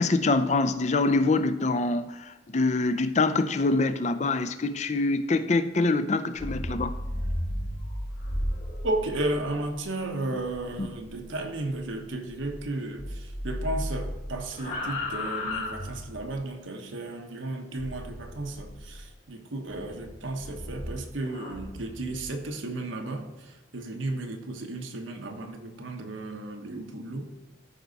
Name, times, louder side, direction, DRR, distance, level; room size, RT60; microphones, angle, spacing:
voice 1, 0.0-6.9 10.8-10.9, left 3 dB, 35° left, 0.5 m, -25 dB
sound 1, 6.2-12.7 13.0-16.4 17.8-19.0 19.7-22.3, left 1 dB, 55° left, 2.6 m, -35 dB
voice 2, 8.8-27.3, right 2 dB, 85° right, 1.1 m, -34 dB
14.0 x 4.7 x 4.0 m
head